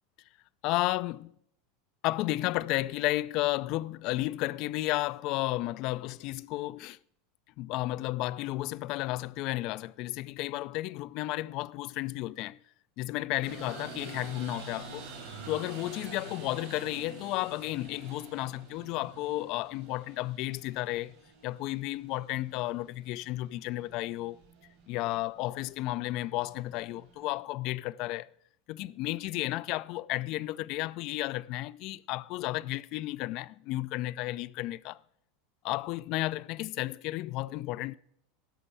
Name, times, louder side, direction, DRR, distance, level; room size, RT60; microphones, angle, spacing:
voice 1, 0.6-1.3 2.0-7.0 7.6-12.6 13.0-15.1 15.5-21.2 21.4-24.4 24.9-28.3 28.7-35.0 35.6-37.9, left 18 dB, 55° left, 0.3 m, -33 dB
sound 1, 13.4-27.4, right 3 dB, 70° right, 4.7 m, -48 dB
11.5 x 6.0 x 7.0 m
hypercardioid pair, 100°, 0 cm